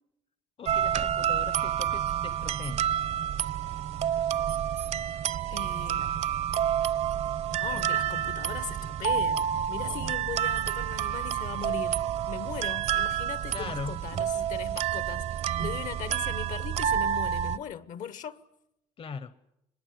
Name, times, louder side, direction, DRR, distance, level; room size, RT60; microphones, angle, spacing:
voice 1, 0.6-2.9 13.5-14.0 19.0-19.3, left 6 dB, 40° left, 1.0 m, -40 dB
sound 1, 0.7-17.6, right 10 dB, 55° right, 0.9 m, -29 dB
voice 2, 5.5-6.3 7.5-18.4, left 8 dB, 65° left, 1.3 m, -39 dB
25.0 x 21.0 x 9.3 m
cardioid pair, 105°, 14 cm